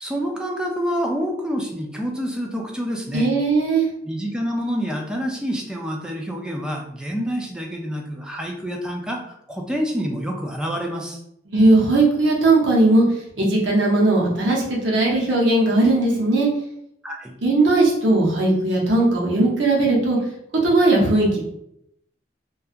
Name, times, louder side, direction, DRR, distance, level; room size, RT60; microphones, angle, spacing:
voice 1, 0.0-3.3 4.0-11.2 17.0-17.4, equal, 5° right, 0 dB, 0.3 m, -27 dB
voice 2, 3.1-3.9 11.5-13.0 13.4-16.5 17.4-20.2 20.6-21.4, right 2 dB, 75° right, -4 dB, 0.7 m, -18 dB
2.7 x 2.3 x 2.4 m, 0.78 s
head